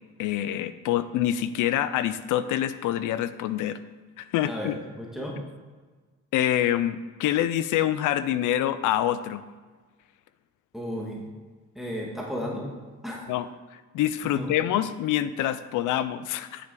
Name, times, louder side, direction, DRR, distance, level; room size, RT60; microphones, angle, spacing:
voice 1, 0.2-3.8 4.2-4.8 6.3-9.4 13.3-16.7, left 12 dB, 85° left, 14 dB, 0.5 m, -26 dB
voice 2, 4.4-5.4 10.7-11.2 11.7-12.7 13.0-13.2 14.2-14.5, equal, ahead, -3 dB, 1.7 m, -34 dB
10.0 x 6.1 x 3.8 m, 1.4 s
cardioid pair, 90°, 30 cm